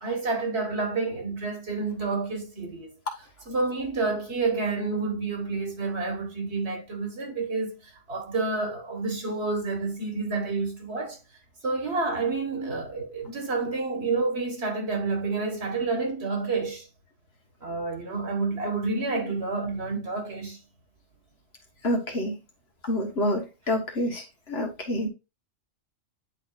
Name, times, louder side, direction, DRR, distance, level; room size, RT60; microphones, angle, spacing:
voice 1, 0.0-11.2 11.6-16.9 17.6-20.6, right 3 dB, 55° right, 1.7 m, -29 dB
voice 2, 21.8-22.4 22.9-24.2 24.5-25.1, left 1 dB, 55° left, 1.5 m, -27 dB
9.9 x 4.1 x 2.4 m
omnidirectional pair, 1.3 m